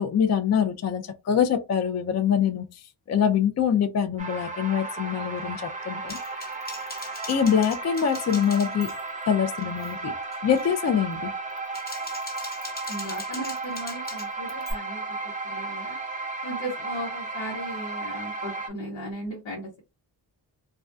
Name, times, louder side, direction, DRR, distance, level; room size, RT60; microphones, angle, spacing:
voice 1, 0.0-6.2 7.3-8.9 9.3-10.1 10.4-11.3, left 8 dB, 40° left, 0.4 m, -24 dB
sound 1, 4.2-18.7, right 3 dB, 15° right, 0.7 m, -34 dB
Typing, 6.1-9.2 9.6-9.9 10.3-10.7 11.5-14.7, left 2 dB, 20° left, 0.9 m, -41 dB
voice 2, 12.9-15.0 15.5-16.0 16.4-19.8, right 1 dB, 80° left, 1.0 m, -36 dB
2.2 x 2.2 x 2.5 m
cardioid pair, 50°, 45 cm